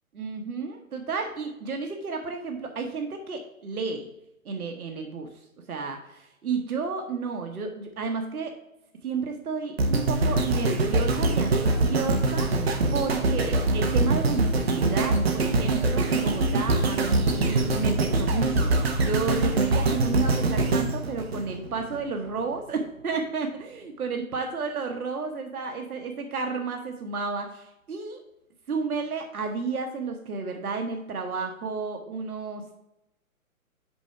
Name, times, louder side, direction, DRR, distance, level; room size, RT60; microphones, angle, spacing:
voice 1, 0.2-4.1 4.4-5.3 5.7-8.5 9.0-28.2 28.7-32.7, right 4 dB, 85° right, 4 dB, 1.2 m, -32 dB
sound 1, 9.8-22.0 22.5-22.6, right 2 dB, 45° right, 1.0 m, -24 dB
6.0 x 4.8 x 5.5 m, 0.86 s
hypercardioid pair, 170°, 43 cm